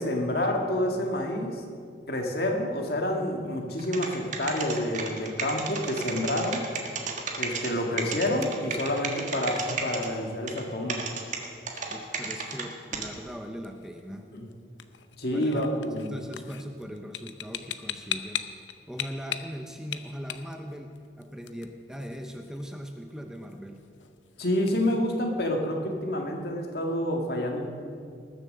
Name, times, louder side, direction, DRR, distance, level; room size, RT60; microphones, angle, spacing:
voice 1, 0.0-1.6 2.1-6.6 7.4-11.0 14.3-14.5 15.2-16.1 24.4-27.7, left 1 dB, 60° left, 2 dB, 1.8 m, -28 dB
sound 1, 3.8-7.7 8.0-10.1 10.5-10.6 10.9-12.6 12.9-13.1, right 5 dB, 45° right, 1.5 m, -32 dB
sound 2, 5.6-25.0, left 10 dB, 90° left, 0.7 m, -43 dB
voice 2, 11.9-14.3 15.3-15.7 16.1-18.5 18.9-23.8, equal, 5° right, 4 dB, 0.7 m, -39 dB
20.0 x 7.4 x 6.6 m, 2.3 s
head